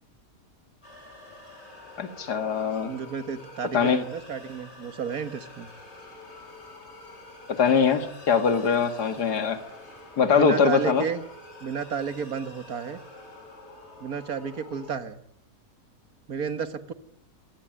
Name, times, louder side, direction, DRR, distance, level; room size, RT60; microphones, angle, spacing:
sound 1, 0.8-14.9, left 2 dB, 40° left, 6.8 m, -47 dB
voice 1, 2.0-2.9 3.7-4.0 7.5-9.6 10.2-11.0, left 6 dB, 85° left, 9 dB, 2.4 m, -22 dB
voice 2, 2.8-5.7 10.3-11.2 11.6-13.0 14.0-15.2 16.3-16.9, right 6 dB, 65° right, 11 dB, 2.1 m, -32 dB
24.5 x 18.5 x 9.1 m, 0.68 s
omnidirectional pair, 1.7 m